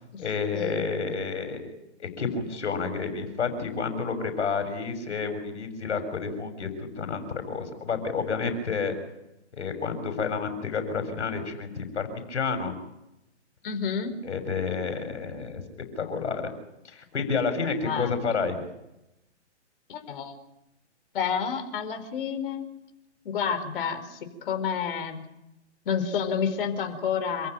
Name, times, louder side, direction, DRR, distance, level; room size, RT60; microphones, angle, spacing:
voice 1, 0.2-1.7 2.0-8.9 9.5-12.8 14.2-15.6 16.0-16.5 16.8-18.7, left 5 dB, 75° left, 8 dB, 6.9 m, -30 dB
voice 2, 13.6-14.2 17.6-18.2 19.9-20.4 21.1-22.7 23.2-25.2 25.8-27.5, left 7 dB, 50° left, 8 dB, 4.6 m, -29 dB
28.0 x 15.5 x 9.2 m, 0.89 s
hypercardioid pair, 150°, 35 cm